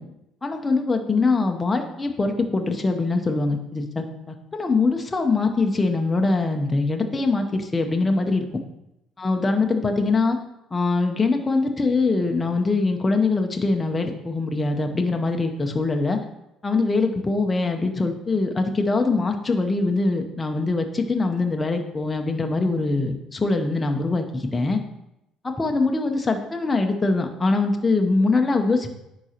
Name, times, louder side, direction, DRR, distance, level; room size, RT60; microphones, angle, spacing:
voice 1, 0.4-8.5 9.2-10.4 10.7-16.2 16.6-24.8 25.4-28.9, left 3 dB, 15° left, 3 dB, 0.7 m, -23 dB
9.7 x 3.9 x 4.4 m, 0.86 s
cardioid pair, 140°, 0 cm